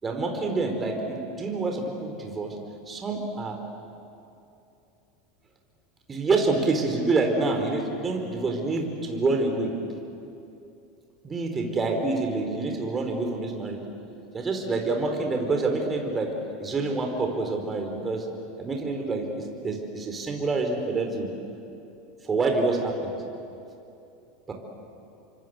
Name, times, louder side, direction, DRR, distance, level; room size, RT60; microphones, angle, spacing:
voice 1, 0.0-2.5 2.9-3.6 6.1-9.7 11.2-13.8 14.3-16.3 16.6-18.2 18.6-21.3 22.2-23.1 24.5-24.6, right 3 dB, 25° right, 3 dB, 4.8 m, -27 dB
29.0 x 25.0 x 8.1 m, 2.7 s
hypercardioid pair, 85°, 0 cm